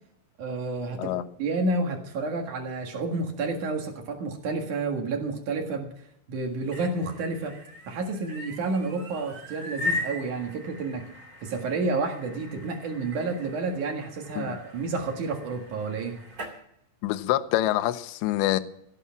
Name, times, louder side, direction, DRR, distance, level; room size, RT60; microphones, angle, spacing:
voice 1, 0.4-1.1 1.4-5.9 6.3-7.6 7.9-11.0 11.4-16.2, right 3 dB, 55° right, 2.3 m, -30 dB
sound 1, 6.5-16.6, left 2 dB, 40° right, 1.3 m, -39 dB
voice 2, 17.0-18.6, left 14 dB, 80° left, 2.6 m, -26 dB
16.5 x 8.5 x 7.2 m
omnidirectional pair, 5.8 m